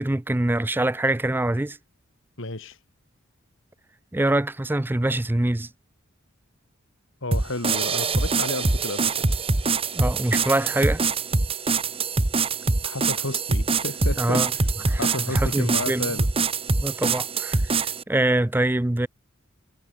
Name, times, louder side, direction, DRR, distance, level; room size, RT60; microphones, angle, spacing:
voice 1, 0.0-1.8 4.1-5.7 9.9-11.0 14.2-14.5 14.9-15.0 15.3-16.1 16.8-19.1, right 1 dB, 10° right, 0.4 m, -24 dB
voice 2, 2.4-2.8 7.2-9.3 12.8-14.6 15.0-16.3, left 2 dB, 65° left, 3.1 m, -32 dB
sound 1, 7.3-18.0, right 3 dB, 25° right, 1.1 m, -24 dB
head